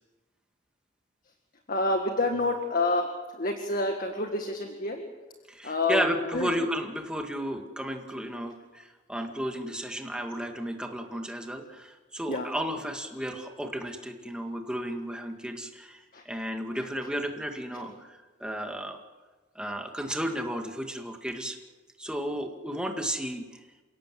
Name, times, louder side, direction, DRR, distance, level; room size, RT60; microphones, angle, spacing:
voice 1, 1.7-3.1 3.3-5.0 5.6-6.0 6.3-6.5 12.3-12.5 16.1-16.2, left 2 dB, 45° left, 4 dB, 1.8 m, -28 dB
voice 2, 5.5-19.0 19.6-21.6 22.0-23.6, equal, 5° right, 3 dB, 2.0 m, -33 dB
28.5 x 17.0 x 7.7 m, 1.3 s
head